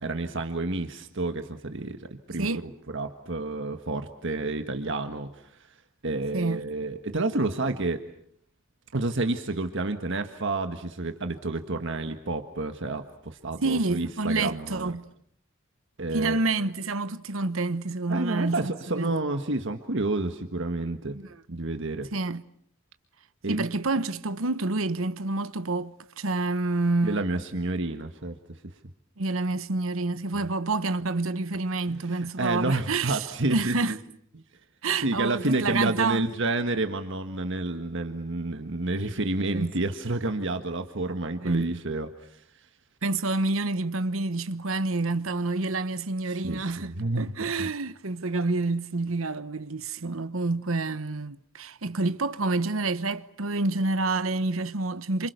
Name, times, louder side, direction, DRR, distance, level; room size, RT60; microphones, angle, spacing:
voice 1, 0.0-5.5 6.0-8.0 8.9-14.9 16.0-16.4 18.1-21.2 21.5-22.1 23.4-23.7 27.0-28.4 31.9-34.0 35.0-42.4 46.3-47.3 47.6-47.7, right 2 dB, 60° right, 1.6 m, -30 dB
voice 2, 6.3-6.6 13.6-15.0 16.1-19.2 21.1-21.2 22.1-22.4 23.5-27.2 29.2-34.0 34.8-36.2 39.5-39.7 41.4-41.7 43.0-55.3, right 3 dB, 75° right, 1.1 m, -28 dB
29.5 x 27.0 x 6.8 m
head